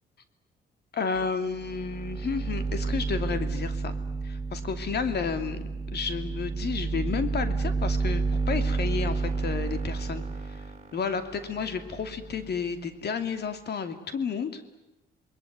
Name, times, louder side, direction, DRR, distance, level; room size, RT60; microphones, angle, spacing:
voice 1, 0.9-4.0 4.2-5.6 5.9-10.2 10.9-14.6, left 5 dB, 55° left, 9 dB, 2.8 m, -31 dB
sound 1, 1.2-1.3 1.6-12.7, right 4 dB, 35° right, 5.8 m, -31 dB
28.0 x 21.0 x 9.3 m, 0.91 s
cardioid pair, 90°, 20 cm